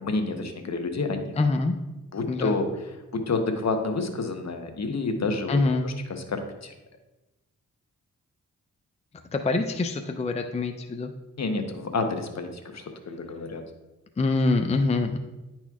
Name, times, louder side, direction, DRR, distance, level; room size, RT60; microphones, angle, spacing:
voice 1, 0.0-1.4 2.1-2.7 3.1-5.6 5.8-6.7 11.4-13.6, left 3 dB, 55° left, 5 dB, 1.0 m, -29 dB
voice 2, 1.4-1.8 2.3-2.5 5.5-5.9 9.3-11.1 14.2-15.2, left 3 dB, 20° left, 6 dB, 0.5 m, -25 dB
9.9 x 4.3 x 2.4 m, 1.1 s
cardioid pair, 45°, 33 cm